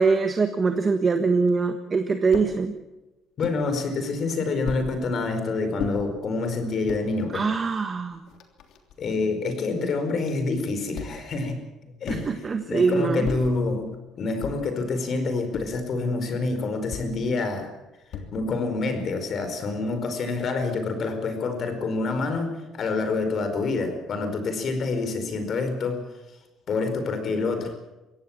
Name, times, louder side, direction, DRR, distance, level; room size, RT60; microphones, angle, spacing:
voice 1, 0.0-2.7 7.3-8.2 9.7-9.9 12.1-13.3, right 4 dB, 30° right, 7 dB, 1.4 m, -23 dB
sound 1, 2.3-2.6 3.4-3.6 4.6-4.9 5.8-6.0 6.7-7.1 7.8-7.9 8.1-9.1 10.9-11.3 12.0-12.4 13.2-13.6 14.4-14.8 15.5-15.9 16.9-17.2 18.1-18.6, left 6 dB, 70° left, 3.2 m, -35 dB
voice 2, 3.4-7.4 9.0-11.6 12.0-12.3 12.7-13.9 14.2-17.7 18.3-26.0 26.7-27.8, left 3 dB, 45° left, 8 dB, 4.7 m, -27 dB
23.5 x 17.0 x 7.4 m, 1.0 s
cardioid pair, 135°, 0 cm